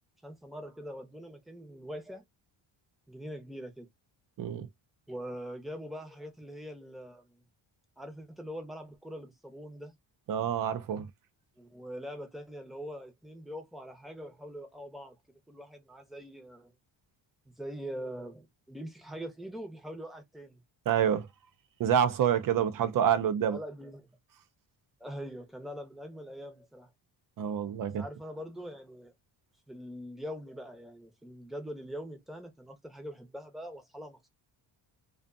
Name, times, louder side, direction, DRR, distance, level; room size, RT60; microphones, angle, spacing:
voice 1, 0.2-2.2 3.1-3.9 5.1-7.4 8.0-9.9 11.6-15.2 15.5-16.7 17.5-20.6 23.4-24.1 25.0-26.9 28.0-29.1 29.7-34.3, equal, ahead, 0.7 m, -43 dB
voice 2, 10.3-11.1 20.9-21.3 21.8-23.6 27.4-28.0, right 9 dB, 45° right, 0.5 m, -27 dB
2.5 x 2.4 x 2.5 m
cardioid pair, 120°, 47 cm